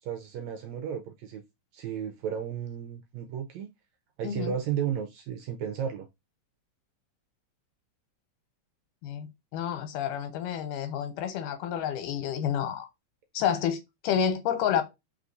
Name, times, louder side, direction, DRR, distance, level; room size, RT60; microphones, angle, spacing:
voice 1, 0.0-1.4 1.7-3.7 4.2-6.1, right 8 dB, 80° right, 1.6 m, -33 dB
voice 2, 9.5-12.9 13.3-14.8, left 9 dB, 90° left, 2.4 m, -29 dB
4.7 x 3.4 x 2.5 m
omnidirectional pair, 3.7 m